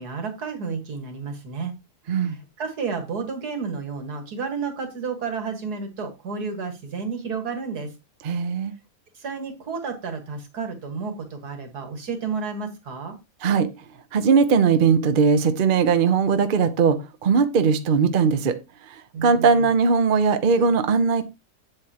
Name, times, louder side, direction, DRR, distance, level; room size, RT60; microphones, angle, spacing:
voice 1, 0.0-1.7 2.1-7.9 9.2-13.2 19.1-19.7, right 5 dB, 80° right, 5 dB, 2.3 m, -31 dB
voice 2, 8.2-8.7 13.4-13.7 14.1-18.6 19.2-21.2, right 5 dB, 45° right, 10 dB, 0.8 m, -19 dB
8.2 x 7.8 x 2.9 m, 0.24 s
omnidirectional pair, 1.7 m